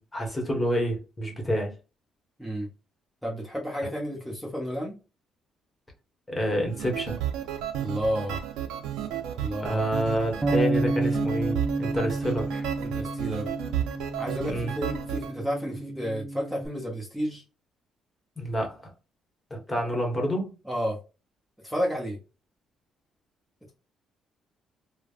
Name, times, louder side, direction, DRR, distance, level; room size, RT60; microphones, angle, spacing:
voice 1, 0.0-1.7 6.3-7.2 9.6-12.6 14.5-14.7 18.4-18.9 19.5-20.5, equal, 20° left, 1.2 m, -28 dB
voice 2, 3.2-5.0 7.8-8.4 9.3-9.8 12.8-13.5 14.2-17.4 20.7-21.0 21.6-22.2, equal, ahead, 1.0 m, -31 dB
sound 1, 6.7-15.3, right 10 dB, 85° right, 0.5 m, -33 dB
Bass guitar, 10.4-16.7, right 2 dB, 25° right, 0.4 m, -30 dB
3.2 x 2.1 x 2.4 m
cardioid pair, 80°, 0 cm